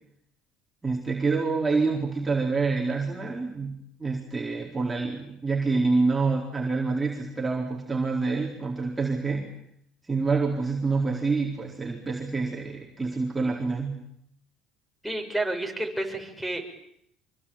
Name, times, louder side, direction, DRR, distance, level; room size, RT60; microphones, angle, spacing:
voice 1, 0.8-9.5 10.0-14.0, right 4 dB, 15° right, -1 dB, 4.4 m, -27 dB
voice 2, 15.0-16.6, right 1 dB, ahead, 7 dB, 6.8 m, -30 dB
25.5 x 24.0 x 9.0 m, 0.74 s
supercardioid pair, 90°, 0 cm